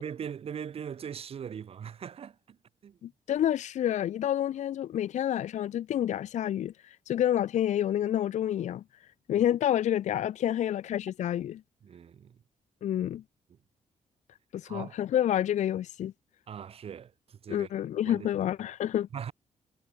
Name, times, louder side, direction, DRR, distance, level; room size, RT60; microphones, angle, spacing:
voice 1, 0.0-2.6 2.8-3.0 11.8-12.4 14.6-15.0 16.5-17.7 18.0-18.3 19.1-19.3, right 8 dB, 50° right, 0.9 m, -40 dB
voice 2, 3.0-8.8 9.3-11.6 12.8-13.2 14.5-16.1 17.5-19.1, left 11 dB, 65° left, 0.5 m, -29 dB
cardioid pair, 135°, 13 cm